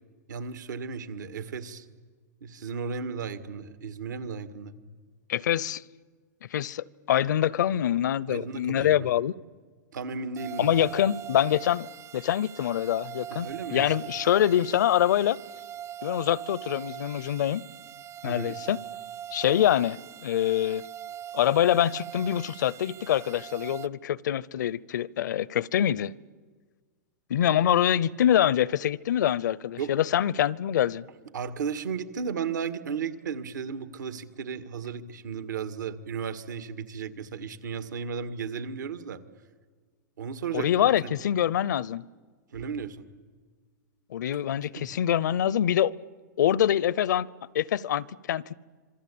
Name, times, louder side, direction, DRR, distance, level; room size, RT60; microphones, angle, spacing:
voice 1, 0.3-1.9 2.4-4.7 8.3-9.1 9.9-10.7 13.3-14.1 18.2-18.6 29.8-30.0 31.3-39.2 40.2-41.1 42.5-43.1 44.8-44.9, right 6 dB, 85° right, 1.9 m, -35 dB
voice 2, 5.3-5.8 6.5-9.3 10.6-15.4 16.0-17.6 18.2-18.8 19.3-20.8 21.3-26.1 27.3-31.0 40.5-42.0 44.1-45.9 46.4-47.3 47.5-48.5, left 11 dB, 75° left, 0.7 m, -25 dB
sound 1, 10.4-23.9, right 10 dB, 35° right, 0.7 m, -42 dB
27.0 x 23.0 x 8.6 m
hypercardioid pair, 125°, 10 cm